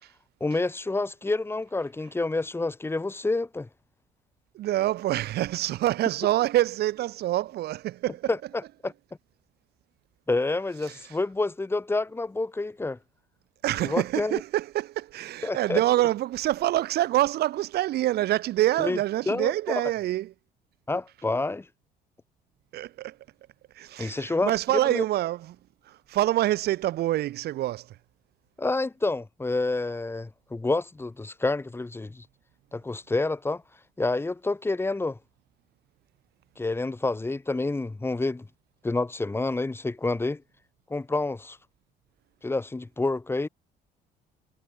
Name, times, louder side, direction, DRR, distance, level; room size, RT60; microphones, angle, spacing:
voice 1, 0.4-3.7 8.3-8.4 8.8-8.9 10.3-13.0 13.8-14.4 15.4-15.8 18.8-19.0 19.3-19.5 20.9-21.6 24.0-24.5 24.9-25.0 28.6-32.2 32.7-33.6 34.0-35.2 36.6-38.5 38.8-40.4 40.9-41.6 42.4-43.5, left 2 dB, 15° left, 2.6 m, -28 dB
voice 2, 4.5-8.3 10.8-11.2 13.6-20.3 22.7-23.2 23.7-25.6 25.8-28.0, right 14 dB, 75° right, 5.1 m, -26 dB
cardioid pair, 110°, 17 cm